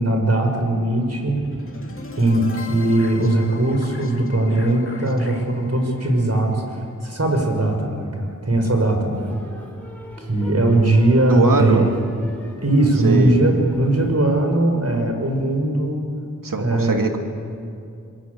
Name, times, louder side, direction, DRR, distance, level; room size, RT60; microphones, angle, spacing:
voice 1, 0.0-1.4 2.2-9.3 10.2-11.8 12.6-16.0 16.6-17.0, right 1 dB, 50° right, 3 dB, 5.9 m, -19 dB
sound 1, 1.4-7.4, left 2 dB, 40° left, 2.4 m, -40 dB
sound 2, 9.1-14.2, equal, 5° left, 6.1 m, -38 dB
voice 2, 11.3-11.9 13.0-13.4 16.4-17.2, right 3 dB, 80° right, 3 dB, 2.7 m, -21 dB
27.5 x 21.0 x 8.5 m, 2.4 s
cardioid pair, 40°, 33 cm